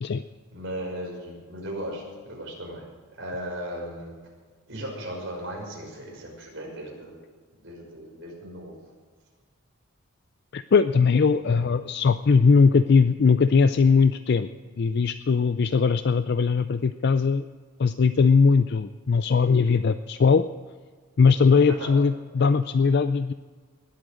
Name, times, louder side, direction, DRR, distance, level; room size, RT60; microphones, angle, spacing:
voice 1, 0.5-2.9 3.2-4.1 4.7-7.2 7.6-8.7 11.5-11.7 21.8-22.0, right 1 dB, 55° right, -2 dB, 5.6 m, -36 dB
voice 2, 10.5-14.5 14.8-17.4 17.8-20.4 21.2-23.3, left 5 dB, 50° left, 11 dB, 0.4 m, -20 dB
20.0 x 8.6 x 6.4 m, 1.5 s
head